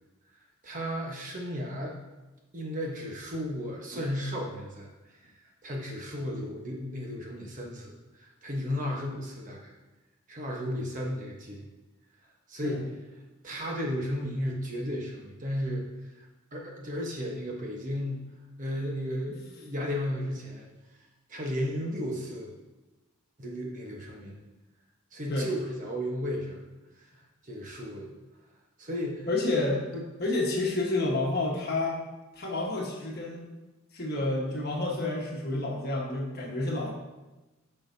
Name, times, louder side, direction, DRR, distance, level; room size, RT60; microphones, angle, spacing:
voice 1, 0.6-2.0 2.5-4.9 5.2-5.3 5.6-9.7 10.3-11.7 12.5-12.8 13.4-15.8 16.2-18.2 18.6-20.7 21.3-22.5 23.4-24.4 25.1-26.6 27.4-28.2 28.8-29.3 29.9-30.0, equal, 35° right, -1 dB, 1.1 m, -34 dB
voice 2, 29.3-29.8 30.2-32.0 32.3-33.5 33.9-36.9, left 2 dB, 45° left, -1 dB, 1.3 m, -29 dB
9.6 x 5.6 x 2.7 m, 1.1 s
head